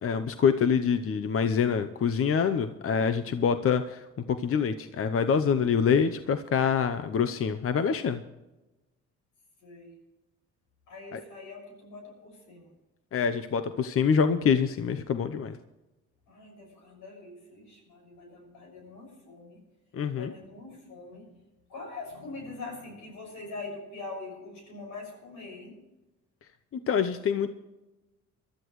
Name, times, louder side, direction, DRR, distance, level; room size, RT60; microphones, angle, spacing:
voice 1, 0.0-8.2 11.1-11.2 13.1-15.6 19.9-20.3 26.7-27.5, left 6 dB, 45° left, 9 dB, 0.8 m, -26 dB
voice 2, 9.6-10.0 10.9-12.7 16.3-19.6 20.1-21.4 21.7-25.8, left 3 dB, 90° left, 1 dB, 6.3 m, -43 dB
22.0 x 13.0 x 3.1 m, 1.0 s
cardioid pair, 90°, 30 cm